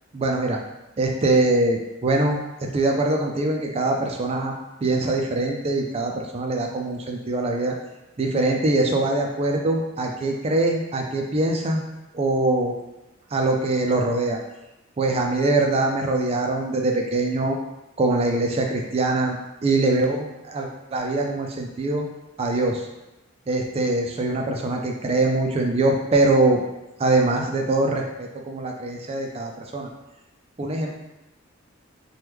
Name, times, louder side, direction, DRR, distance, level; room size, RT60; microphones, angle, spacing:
voice 1, 0.1-0.6 1.0-2.4 2.7-4.6 4.8-7.8 8.2-11.8 12.1-12.7 13.3-14.4 15.0-17.6 18.0-19.4 19.6-22.1 22.4-22.9 23.5-26.6 27.0-29.9 30.6-31.0, right 2 dB, 30° right, 1 dB, 0.4 m, -23 dB
3.0 x 2.2 x 3.4 m, 0.97 s
head